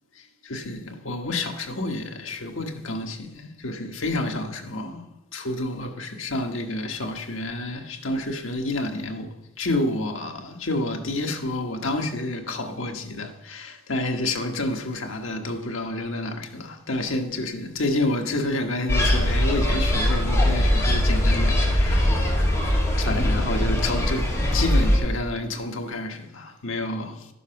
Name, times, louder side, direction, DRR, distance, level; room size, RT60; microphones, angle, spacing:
voice 1, 0.4-5.0 5.3-22.7 23.0-27.3, left 2 dB, 70° left, 1.4 m, -29 dB
sound 1, 18.9-25.0, left 1 dB, 15° left, 2.6 m, -21 dB
12.0 x 7.1 x 5.7 m
head